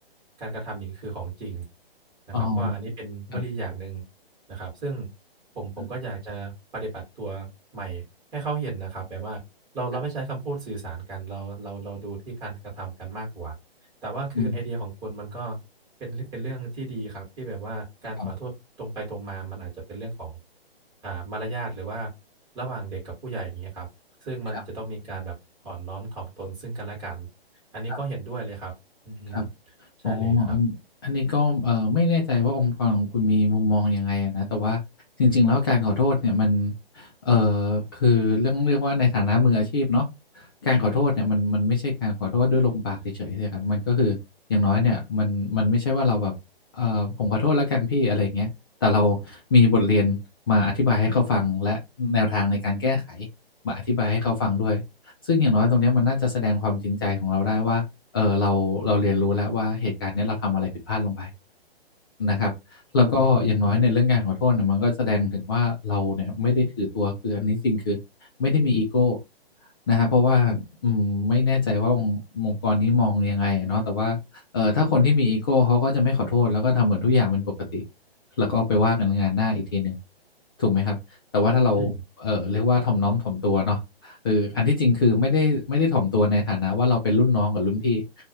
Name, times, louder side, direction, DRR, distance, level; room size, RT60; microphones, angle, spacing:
voice 1, 0.4-1.6 2.3-4.0 4.5-5.1 5.5-7.5 7.7-8.0 8.3-9.4 9.7-13.5 14.0-15.6 16.0-18.5 18.8-20.4 21.0-22.1 22.5-23.9 24.2-25.3 25.6-27.3 27.7-28.7 29.0-29.5 30.0-30.6 63.2-63.6 81.8-82.0, right 3 dB, 15° right, -3 dB, 1.4 m, -34 dB
voice 2, 2.3-2.7 3.3-3.4 14.4-14.6 18.2-18.3 24.5-24.6 27.9-28.0 29.3-29.5 30.0-30.8 31.0-34.8 35.2-40.1 40.3-44.2 44.5-46.3 46.7-48.5 48.8-50.2 50.5-53.3 53.6-54.8 55.2-57.8 58.1-61.3 62.2-68.0 68.4-69.2 69.9-74.2 74.5-77.4 77.7-77.8 78.4-80.0 80.6-81.0 81.3-81.9 82.2-88.0, left 3 dB, 20° left, -2 dB, 0.5 m, -22 dB
2.6 x 2.4 x 2.8 m, 0.22 s
figure-of-eight pair, 130°, 31 cm